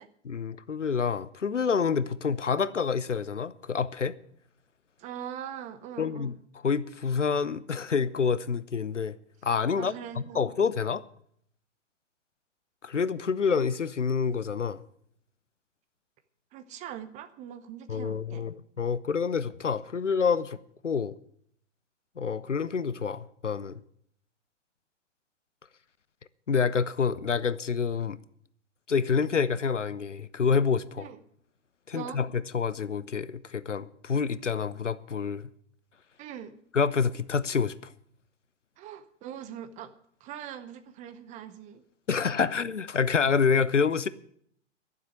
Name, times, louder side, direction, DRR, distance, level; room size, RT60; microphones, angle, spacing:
voice 1, 0.2-4.1 6.0-6.3 6.6-9.1 9.4-9.9 10.3-11.0 12.8-14.8 17.9-20.6 20.8-21.2 22.2-23.8 26.5-28.2 28.9-31.1 31.9-35.5 36.7-37.7 42.1-44.1, left 6 dB, 80° left, 0.8 m, -27 dB
voice 2, 5.0-6.3 9.7-10.5 16.5-18.5 31.0-31.2 31.9-32.2 36.2-36.6 38.8-39.9 40.2-41.8, right 9 dB, 20° right, 0.8 m, -41 dB
12.0 x 7.4 x 9.7 m
figure-of-eight pair, 110°, 36 cm